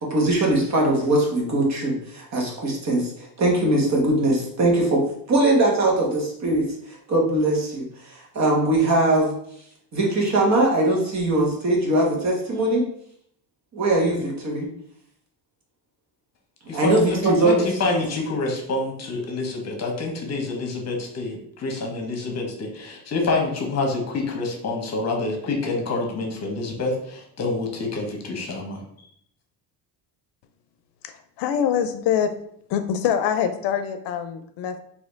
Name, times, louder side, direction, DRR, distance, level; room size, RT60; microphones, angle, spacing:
voice 1, 0.0-9.3 9.9-12.9 13.7-14.7 16.7-17.7, right 1 dB, 40° right, -1 dB, 1.3 m, -21 dB
voice 2, 16.7-28.8, left 3 dB, 40° left, 1 dB, 1.2 m, -27 dB
voice 3, 31.0-32.3 32.7-34.8, left 8 dB, 80° left, 9 dB, 0.6 m, -24 dB
4.2 x 2.9 x 3.9 m, 0.68 s
cardioid pair, 125°, 41 cm